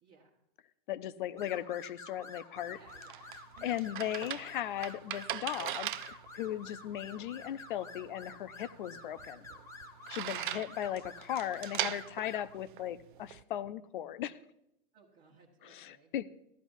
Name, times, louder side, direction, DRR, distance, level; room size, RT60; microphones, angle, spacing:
voice 1, 0.0-0.4 2.7-3.3 3.5-3.9 10.1-10.7 14.9-16.2, right 5 dB, 25° right, -2 dB, 1.3 m, -62 dB
voice 2, 0.9-2.8 3.6-9.5 10.1-14.4 15.6-16.2, left 11 dB, 55° left, 14 dB, 0.7 m, -37 dB
sound 1, 1.4-12.6, left 3 dB, 10° left, 1.0 m, -50 dB
sound 2, 2.6-13.4, right 12 dB, 55° right, 0.6 m, -41 dB
15.0 x 12.5 x 2.7 m, 0.81 s
hypercardioid pair, 155°, 31 cm